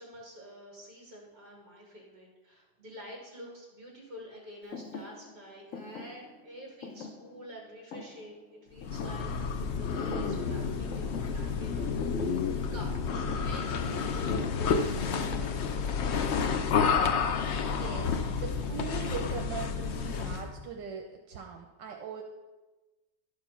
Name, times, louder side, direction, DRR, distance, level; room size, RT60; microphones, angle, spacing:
voice 1, 0.0-9.3 9.7-15.4 18.2-18.6, equal, 50° right, -3 dB, 2.7 m, -48 dB
Thump thud, 4.7-9.7 10.0-10.6 10.9-17.0, left 4 dB, 55° left, 1.0 m, -45 dB
sound 1, 8.8-20.5, left 5 dB, 85° left, 0.6 m, -30 dB
voice 2, 17.6-22.2, right 6 dB, 80° right, 3 dB, 1.5 m, -40 dB
11.5 x 5.1 x 5.8 m, 1.2 s
omnidirectional pair, 1.9 m